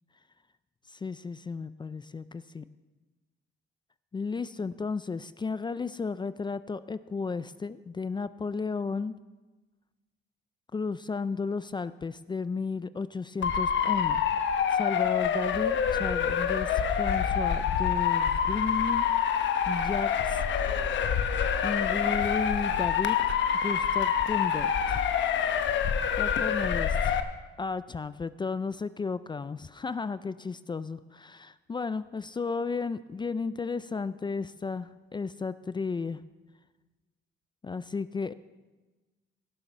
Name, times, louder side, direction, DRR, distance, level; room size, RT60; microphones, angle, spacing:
voice 1, 0.9-2.6 4.1-9.2 10.7-14.2 14.7-20.4 21.6-23.4 23.6-25.0 26.2-27.2 27.6-36.2 37.6-38.3, left 4 dB, 25° left, 15 dB, 0.4 m, -34 dB
Motor vehicle (road) / Siren, 13.4-27.2, left 7 dB, 70° left, 1.0 m, -26 dB
17.5 x 7.1 x 5.5 m, 1.2 s
cardioid pair, 90°, 20 cm